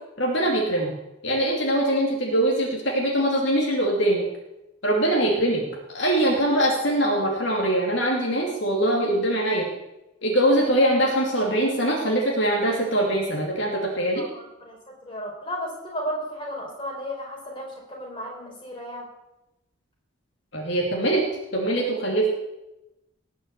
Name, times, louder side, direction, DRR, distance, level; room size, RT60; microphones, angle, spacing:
voice 1, 0.2-0.9 1.2-4.2 4.8-5.6 5.9-9.7 10.2-14.2 20.5-21.2 21.5-22.3, right 1 dB, 60° left, -1 dB, 2.6 m, -22 dB
voice 2, 14.1-14.8 15.0-19.1, equal, 25° left, -1 dB, 4.7 m, -34 dB
19.0 x 6.6 x 8.3 m, 0.95 s
head